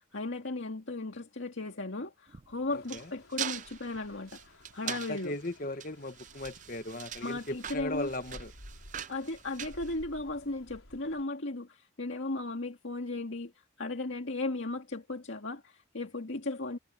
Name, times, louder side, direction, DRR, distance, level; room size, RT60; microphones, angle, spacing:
voice 1, 0.1-5.3 7.2-8.1 9.1-13.5 13.8-16.8, left 2 dB, 70° left, 2.0 m, -36 dB
sound 1, 2.3-10.5, right 9 dB, 35° right, 0.5 m, -42 dB
sound 2, 2.7-11.2, left 1 dB, 90° left, 5.6 m, -54 dB
voice 2, 2.7-3.1 4.8-8.5, left 1 dB, 40° left, 1.6 m, -38 dB
head